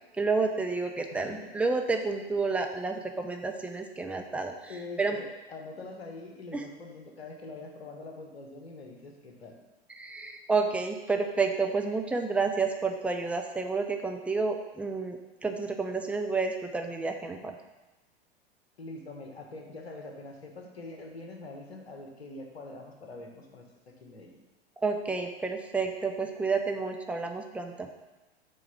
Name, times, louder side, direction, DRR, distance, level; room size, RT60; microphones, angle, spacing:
voice 1, 0.1-4.7 5.0-5.2 6.5-6.6 9.9-17.6 24.8-27.9, right 4 dB, 5° right, 4 dB, 0.6 m, -30 dB
voice 2, 4.7-9.6 18.8-24.4, left 2 dB, 75° left, 1 dB, 1.4 m, -44 dB
7.2 x 3.9 x 5.9 m, 1.1 s
figure-of-eight pair, 85°, 32 cm